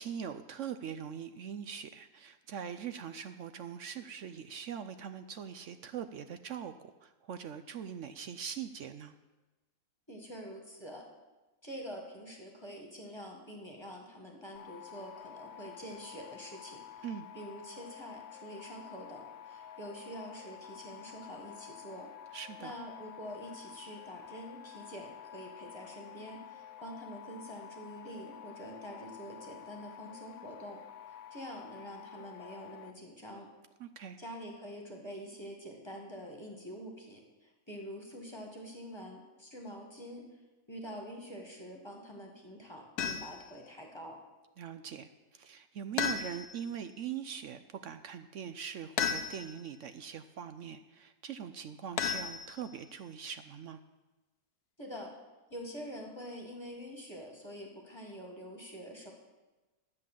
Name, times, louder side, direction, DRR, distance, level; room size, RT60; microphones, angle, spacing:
voice 1, 0.0-6.7 7.0-9.1 17.0-17.3 22.3-22.7 33.8-34.2 44.6-53.8, right 8 dB, 65° right, 10 dB, 0.8 m, -42 dB
voice 2, 10.1-11.0 11.6-17.1 17.3-22.1 22.6-30.8 31.3-33.5 34.2-40.2 40.7-44.2 54.8-55.1 55.5-59.1, equal, 15° left, 0 dB, 1.9 m, -46 dB
sound 1, 14.6-32.9, left 10 dB, 65° left, 1.1 m, -50 dB
sound 2, 43.0-43.5 46.0-46.7 49.0-49.7 52.0-52.9, left 7 dB, 85° left, 1.3 m, -34 dB
10.5 x 7.8 x 7.5 m, 1.1 s
omnidirectional pair, 1.6 m